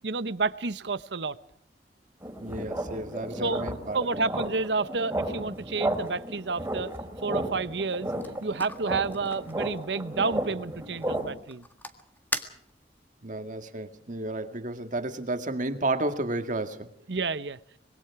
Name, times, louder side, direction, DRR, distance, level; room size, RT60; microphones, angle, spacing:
voice 1, 0.0-1.4 3.4-3.6 3.9-6.9 7.2-8.1 8.4-11.6 17.1-17.6, right 4 dB, 75° right, 15 dB, 0.9 m, -30 dB
sound 1, 2.2-11.3, right 1 dB, 15° right, 3.9 m, -34 dB
voice 2, 2.4-4.0 13.2-16.9, right 2 dB, 45° right, 7 dB, 2.0 m, -32 dB
sound 2, 7.9-13.1, left 2 dB, 10° left, 1.8 m, -41 dB
24.5 x 21.5 x 4.8 m, 0.68 s
head